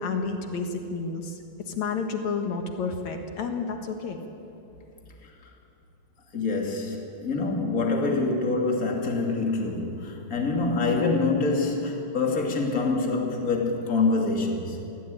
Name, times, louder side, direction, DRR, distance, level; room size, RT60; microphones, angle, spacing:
voice 1, 0.0-1.4 1.7-4.3, left 4 dB, 60° left, 4 dB, 2.0 m, -30 dB
voice 2, 6.3-14.8, left 3 dB, 25° left, 1 dB, 2.1 m, -25 dB
24.0 x 17.0 x 8.9 m, 2.8 s
omnidirectional pair, 5.1 m